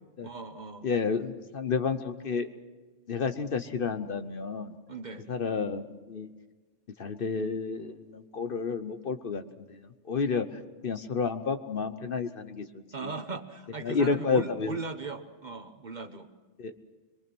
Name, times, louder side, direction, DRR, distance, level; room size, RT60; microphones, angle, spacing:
voice 1, 0.2-0.9 4.9-5.3 12.9-16.3, right 3 dB, 40° right, 8 dB, 1.1 m, -38 dB
voice 2, 0.8-2.5 3.1-4.8 5.3-6.3 7.0-9.8 10.0-10.5 10.8-13.1 13.8-14.8 16.6-16.7, left 5 dB, 50° left, 9 dB, 1.0 m, -30 dB
23.5 x 23.0 x 6.1 m, 1.3 s
omnidirectional pair, 1.2 m